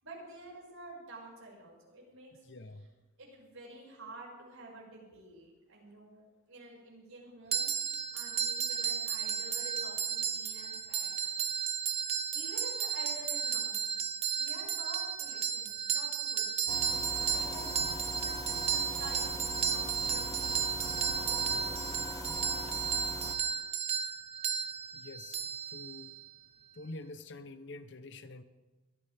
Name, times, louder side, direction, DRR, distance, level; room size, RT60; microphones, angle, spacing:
voice 1, 0.0-2.3 3.2-7.8 8.1-11.5 12.3-13.9 14.4-16.8 17.2-21.9 22.6-22.8, right 2 dB, 80° right, -2 dB, 6.4 m, -50 dB
voice 2, 2.4-2.9 24.9-25.4 25.7-26.1 26.7-28.4, left 2 dB, 55° left, 11 dB, 0.9 m, -46 dB
sound 1, 7.5-26.3, right 8 dB, 30° right, 0.6 m, -34 dB
sound 2, 16.7-23.3, left 1 dB, 15° left, 1.3 m, -40 dB
22.0 x 14.5 x 3.6 m, 1.2 s
head